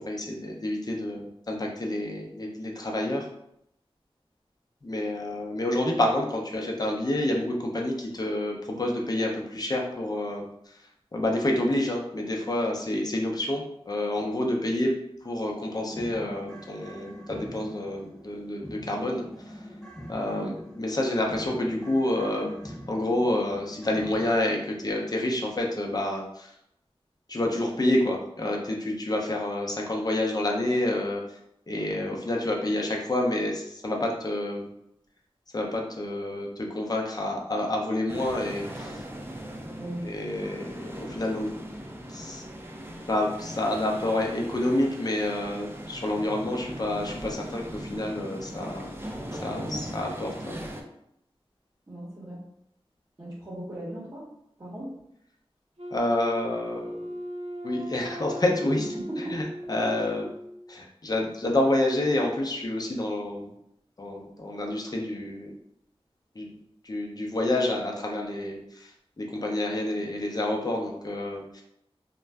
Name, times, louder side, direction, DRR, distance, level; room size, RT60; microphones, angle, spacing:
voice 1, 0.0-3.3 4.8-10.8 11.1-14.9 15.2-19.6 20.1-26.5 27.3-31.4 31.7-34.7 35.5-39.0 40.0-41.5 42.1-42.4 43.1-48.9 49.3-50.6 55.9-57.1 57.6-58.9 59.2-59.4 59.7-60.3 60.7-63.5 64.0-65.5 66.4-66.5 66.8-68.9 69.2-71.6, left 1 dB, 40° left, 0 dB, 0.6 m, -28 dB
sound 1, 15.3-24.4, equal, 5° left, 0.9 m, -44 dB
sound 2, 38.1-50.8, equal, 20° right, 0.4 m, -39 dB
voice 2, 39.8-40.1 49.5-50.0 51.9-52.4 53.2-54.3 54.6-54.9 59.1-59.4, right 1 dB, 35° right, -8 dB, 0.8 m, -37 dB
Wind instrument woodwind instrument, 55.8-60.8, equal, 90° right, 0.5 m, -38 dB
2.4 x 2.1 x 3.3 m, 0.77 s
wide cardioid pair, 60°, 11 cm